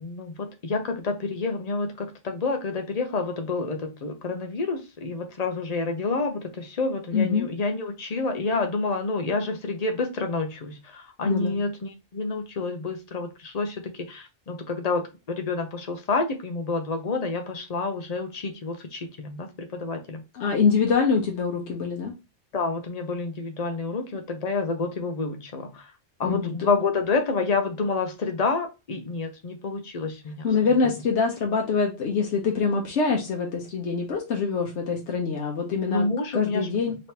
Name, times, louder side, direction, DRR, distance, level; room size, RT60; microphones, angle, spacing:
voice 1, 0.0-20.2 22.5-25.9 26.2-30.5 35.9-36.7, left 3 dB, 45° left, 5 dB, 0.6 m, -28 dB
voice 2, 7.1-7.5 11.2-11.6 20.3-22.1 26.2-26.5 30.4-36.1 36.3-37.0, left 5 dB, 75° left, 0 dB, 1.0 m, -24 dB
3.3 x 3.0 x 2.8 m, 0.27 s
omnidirectional pair, 1.2 m